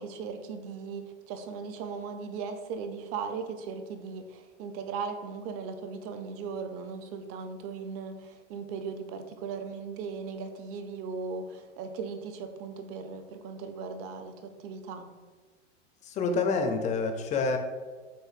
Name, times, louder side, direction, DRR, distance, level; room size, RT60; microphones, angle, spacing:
voice 1, 0.0-15.1, right 5 dB, 40° right, 8 dB, 0.5 m, -38 dB
voice 2, 16.0-17.6, left 4 dB, 20° left, 5 dB, 0.4 m, -27 dB
7.2 x 2.6 x 2.4 m, 1.4 s
hypercardioid pair, 110°, 36 cm